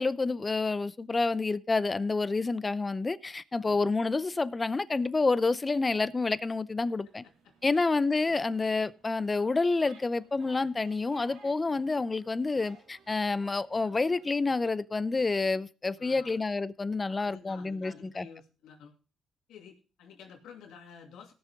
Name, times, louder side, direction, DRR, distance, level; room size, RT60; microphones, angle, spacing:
voice 1, 0.0-7.2 7.6-18.3, left 3 dB, 25° left, 0.6 m, -28 dB
sound 1, 6.8-14.8, right 4 dB, 85° right, 2.6 m, -59 dB
voice 2, 7.4-7.8 8.2-8.3 16.0-16.4 17.2-18.9 19.5-21.3, left 6 dB, 80° left, 2.6 m, -51 dB
18.0 x 6.6 x 3.6 m
cardioid pair, 90°, 0 cm